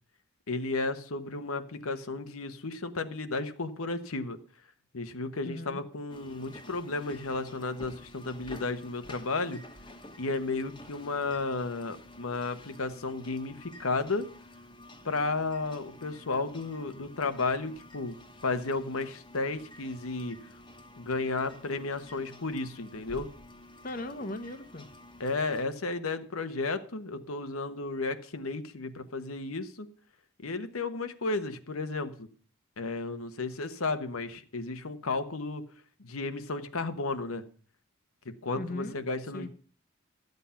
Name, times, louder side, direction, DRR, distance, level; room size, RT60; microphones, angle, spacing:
voice 1, 0.5-4.4 4.9-9.6 10.2-14.3 15.0-18.2 18.4-20.6 21.0-23.3 25.2-29.9 30.4-32.3 32.8-35.6 36.0-37.4 38.2-39.5, left 3 dB, 90° left, 9 dB, 1.1 m, -33 dB
voice 2, 5.4-5.8 23.8-24.9 38.5-39.0 39.3-39.5, left 1 dB, 40° left, 10 dB, 0.9 m, -38 dB
sound 1, 6.1-25.7, left 1 dB, 20° left, 1.1 m, -50 dB
13.0 x 8.1 x 5.7 m, 0.43 s
head